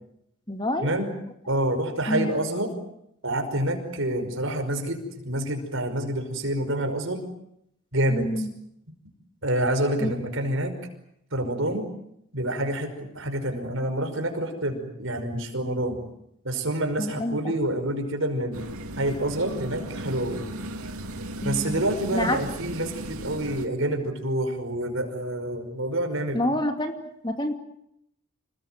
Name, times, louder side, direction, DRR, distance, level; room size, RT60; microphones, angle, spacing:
voice 1, 0.5-0.9 2.1-2.3 8.1-8.5 10.0-10.1 17.0-17.5 21.4-21.8 22.1-22.4 26.3-27.0 27.2-27.5, left 1 dB, 20° left, 5 dB, 2.3 m, -27 dB
voice 2, 1.5-2.7 3.2-7.2 7.9-8.5 9.4-10.7 11.3-11.9 12.3-16.0 16.4-20.4 21.4-26.5, right 1 dB, 65° right, 6 dB, 5.4 m, -27 dB
sound 1, 18.5-23.7, right 1 dB, 85° right, 2.5 m, -36 dB
27.5 x 20.5 x 9.3 m, 0.78 s
head